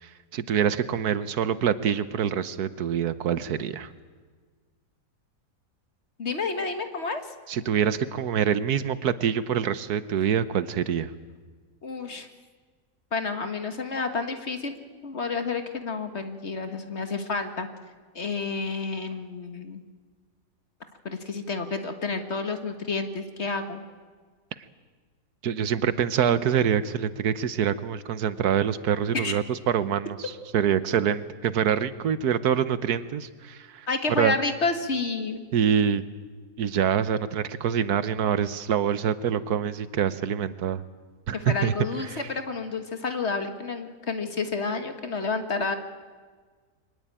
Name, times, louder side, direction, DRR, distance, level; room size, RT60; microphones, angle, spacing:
voice 1, 0.0-3.9 7.5-11.1 25.4-33.9 34.2-34.3 35.5-36.0 36.6-40.8 41.3-41.7 42.1-42.2, right 8 dB, 75° right, 14 dB, 1.4 m, -25 dB
voice 2, 6.2-7.3 11.8-12.3 13.1-14.7 15.0-17.7 18.1-19.8 21.0-23.8 29.1-29.3 33.9-35.4 41.3-45.7, left 4 dB, 45° left, 7 dB, 1.8 m, -30 dB
23.5 x 19.5 x 8.9 m, 1.5 s
omnidirectional pair, 1.7 m